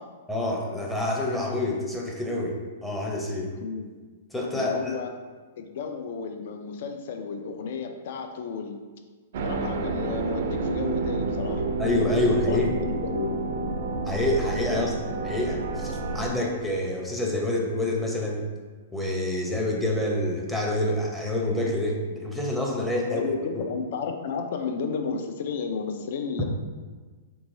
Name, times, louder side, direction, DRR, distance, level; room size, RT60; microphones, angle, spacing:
voice 1, 0.3-3.5 4.3-4.9 11.8-12.7 14.1-14.9 15.2-15.9 16.1-18.4 18.9-23.2 23.5-23.6, left 1 dB, 5° left, -2 dB, 0.6 m, -27 dB
voice 2, 3.6-3.9 4.5-5.1 5.6-8.8 9.4-11.7 12.1-12.2 12.5-13.4 14.7-14.9 23.0-26.4, left 5 dB, 60° left, 5 dB, 0.4 m, -33 dB
sound 1, 9.3-16.3, right 3 dB, 60° right, 0.3 m, -29 dB
3.5 x 3.0 x 2.6 m, 1.4 s
hypercardioid pair, 130°, 0 cm